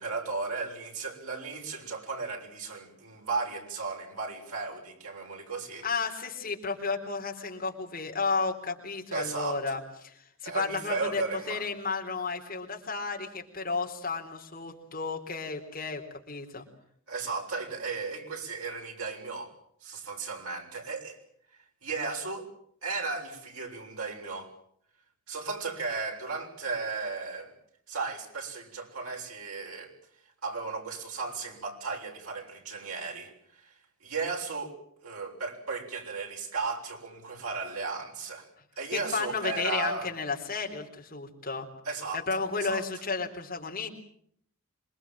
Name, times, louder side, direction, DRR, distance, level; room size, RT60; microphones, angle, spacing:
voice 1, 0.0-5.9 9.1-9.8 10.4-11.7 17.1-19.5 19.8-21.2 21.8-22.5 22.8-24.5 25.3-27.5 27.9-29.9 30.4-33.7 34.0-34.7 35.0-38.5 38.8-40.1 41.8-42.8, right 4 dB, 80° right, 1 dB, 7.0 m, -35 dB
voice 2, 5.8-16.6 38.9-41.7 42.1-43.9, left 4 dB, 40° left, 2 dB, 3.9 m, -33 dB
27.0 x 23.5 x 7.7 m, 0.68 s
head